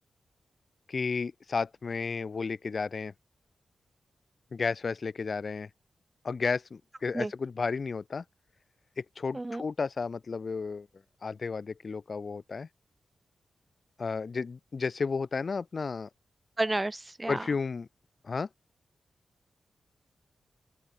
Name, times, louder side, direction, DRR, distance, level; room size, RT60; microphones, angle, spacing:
voice 1, 0.9-3.1 4.5-5.7 6.2-8.2 9.0-10.9 11.2-12.7 14.0-16.1 17.3-17.9 18.2-18.5, left 4 dB, 55° left, 1.3 m, -32 dB
voice 2, 9.3-9.7 16.6-17.5, right 2 dB, 25° right, 0.4 m, -31 dB
open air
cardioid pair, 50°, 0 cm